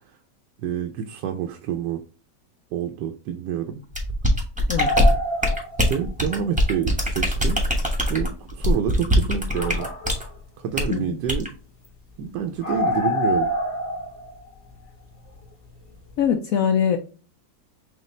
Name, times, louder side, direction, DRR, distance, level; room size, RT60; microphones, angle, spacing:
voice 1, 0.6-2.0 2.7-3.8 5.9-7.6 8.1-9.9 10.6-11.5 12.2-13.5, right 8 dB, 80° right, 1.2 m, -27 dB
sound 1, 3.9-10.3 10.7-10.9 11.3-11.5, left 1 dB, 5° right, 0.9 m, -22 dB
sound 2, 4.8-6.5 6.7-6.8 7.3-7.4 8.1-8.2 9.4-10.4 10.7-11.0 11.4-11.5 11.8-11.9 12.1-12.2 12.6-15.6 15.9-16.2, left 1 dB, 25° left, 0.9 m, -27 dB
voice 2, 16.2-17.0, left 8 dB, 70° left, 0.9 m, -22 dB
6.4 x 2.4 x 3.1 m
omnidirectional pair, 1.9 m